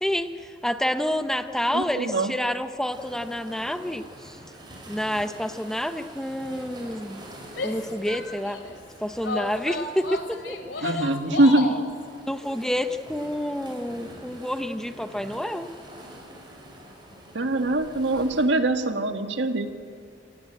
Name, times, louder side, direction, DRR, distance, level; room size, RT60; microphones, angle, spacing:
voice 1, 0.0-4.4 4.9-7.2 7.6-8.6 9.0-11.4 12.3-15.7, equal, 5° left, 9 dB, 0.8 m, -29 dB
voice 2, 1.7-2.3 10.8-11.7 17.3-19.7, right 2 dB, 70° right, 7 dB, 1.8 m, -23 dB
sound 1, 2.9-18.5, right 1 dB, 25° right, 5.3 m, -46 dB
Female speech woman speaking / Yell, 7.5-8.7 9.2-11.9, left 2 dB, 80° left, 2.6 m, -32 dB
27.0 x 16.5 x 8.9 m, 2.3 s
head